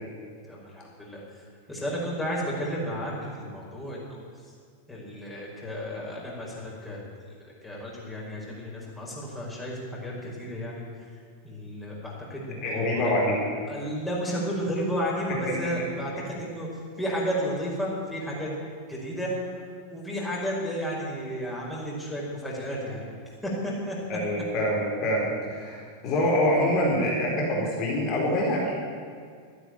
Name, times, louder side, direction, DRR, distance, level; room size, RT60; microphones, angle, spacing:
voice 1, 0.5-1.2 1.7-4.2 4.9-7.0 7.4-11.1 11.4-13.1 13.7-16.7 17.0-18.5 18.9-19.3 19.9-23.0 23.4-24.0, equal, 10° left, -4 dB, 5.0 m, -32 dB
voice 2, 12.6-13.4 24.1-28.7, left 1 dB, 40° left, -2 dB, 4.2 m, -25 dB
13.0 x 9.6 x 9.2 m, 2.1 s
figure-of-eight pair, 90°, 0 cm